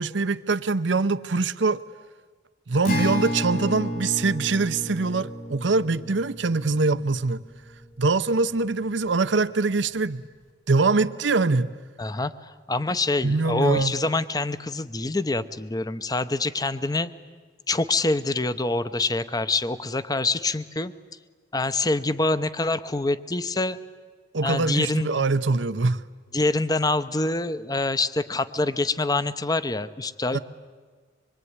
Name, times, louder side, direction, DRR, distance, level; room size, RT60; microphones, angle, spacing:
voice 1, 0.0-1.8 2.7-7.4 8.0-10.2 10.7-11.7 13.2-13.9 24.3-26.0 30.3-30.4, right 3 dB, 80° right, 0.8 m, -23 dB
Acoustic guitar, 2.8-8.3, equal, 50° left, 3.4 m, -32 dB
voice 2, 12.0-17.1 17.7-20.9 21.5-23.8 24.4-25.1 26.3-30.4, left 2 dB, 20° left, 0.8 m, -25 dB
25.5 x 22.5 x 9.6 m
head